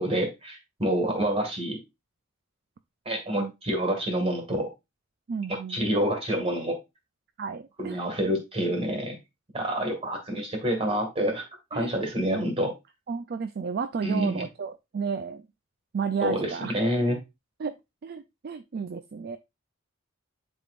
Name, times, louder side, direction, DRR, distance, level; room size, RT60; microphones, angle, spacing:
voice 1, 0.0-1.8 3.1-4.7 5.5-6.8 7.8-9.2 9.5-11.4 11.7-12.7 14.0-14.4 16.2-17.2, right 1 dB, 30° right, 3 dB, 2.0 m, -27 dB
voice 2, 5.3-5.9 7.4-8.0 11.7-12.0 13.1-15.4 15.9-16.8 17.6-17.7 18.0-19.4, right 5 dB, 45° right, 10 dB, 0.4 m, -32 dB
11.0 x 3.6 x 2.5 m, 0.22 s
head